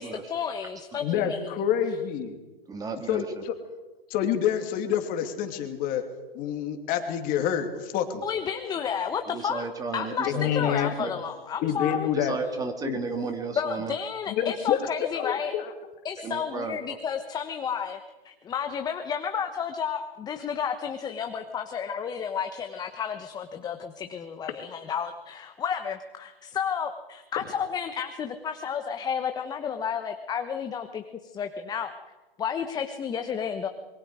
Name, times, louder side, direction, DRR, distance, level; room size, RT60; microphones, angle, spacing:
voice 1, 0.0-1.5 8.2-9.7 9.9-12.1 13.5-15.5 16.0-18.0 18.2-31.9 32.4-33.7, left 7 dB, 15° left, 7 dB, 1.2 m, -31 dB
voice 2, 1.0-2.3 3.1-3.5 4.1-6.0 6.3-8.2 10.2-10.9 11.6-12.3 12.8-13.0 14.3-15.7, left 9 dB, 30° left, 6 dB, 2.8 m, -27 dB
voice 3, 2.7-3.3 9.3-11.1 12.1-13.9 16.2-16.8, right 4 dB, 10° right, 6 dB, 1.9 m, -33 dB
26.0 x 23.0 x 5.0 m, 1.2 s
hypercardioid pair, 130°, 29 cm